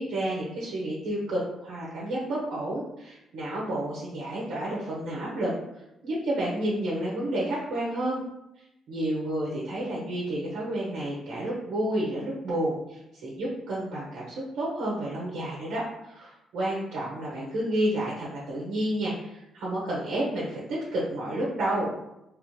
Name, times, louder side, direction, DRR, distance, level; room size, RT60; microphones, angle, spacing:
voice 1, 0.0-8.2 8.9-21.9, right 1 dB, 75° right, -5 dB, 1.0 m, -30 dB
3.6 x 3.3 x 3.2 m, 0.88 s
cardioid pair, 90°, 0 cm